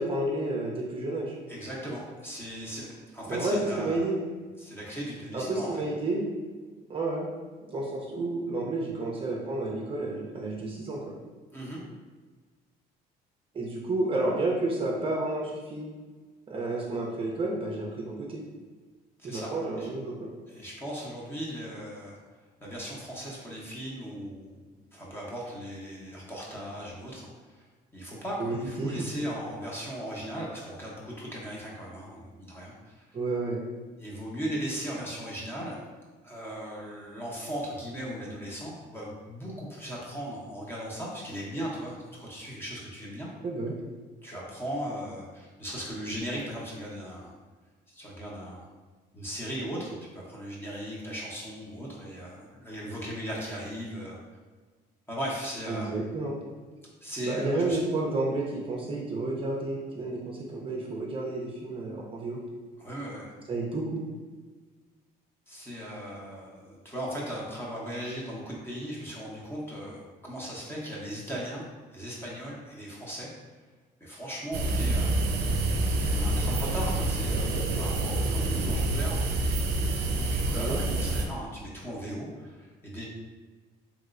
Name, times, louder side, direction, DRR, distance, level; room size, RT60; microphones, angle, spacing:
voice 1, 0.0-1.3 3.3-4.2 5.3-6.2 6.9-7.3 7.6-11.2 13.5-15.9 16.5-18.4 19.2-20.3 28.4-29.0 33.1-33.6 43.4-43.8 55.7-56.4 57.3-62.4 63.5-64.0 80.5-80.8, right 2 dB, 30° right, -3 dB, 0.5 m, -31 dB
voice 2, 1.5-4.1 4.6-5.8 11.5-11.8 19.2-19.9 20.5-22.2 22.6-27.6 27.9-33.1 34.0-35.8 36.2-43.3 44.2-47.3 47.9-48.7 49.1-54.2 55.1-56.0 57.0-57.8 62.8-63.3 65.5-71.6 71.9-73.3 74.0-75.2 75.7-79.2 80.2-83.0, equal, 15° left, -5 dB, 0.8 m, -38 dB
night rural ambient, 74.5-81.3, right 2 dB, 80° right, 0.5 m, -27 dB
3.0 x 3.0 x 2.5 m, 1.4 s
cardioid pair, 110°, 17 cm